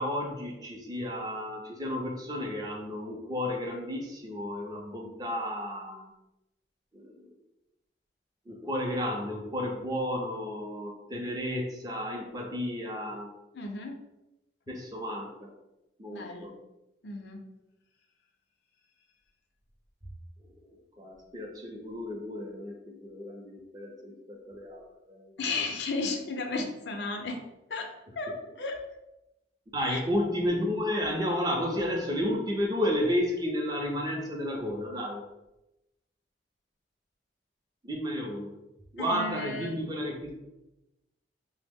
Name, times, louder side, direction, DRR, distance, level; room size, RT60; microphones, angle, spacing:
voice 1, 0.0-6.1 6.9-7.3 8.5-13.3 14.7-15.5 16.0-16.5 20.4-20.7 21.0-25.4 29.7-35.2 37.8-38.5 38.9-40.3, equal, 20° right, 0 dB, 0.5 m, -32 dB
voice 2, 13.5-14.0 16.1-16.5 17.0-17.4 25.4-27.4 27.7-27.8 28.2-28.8 29.8-30.0 39.0-39.8, left 3 dB, 70° left, 3 dB, 0.5 m, -34 dB
3.3 x 2.0 x 3.5 m, 0.94 s
head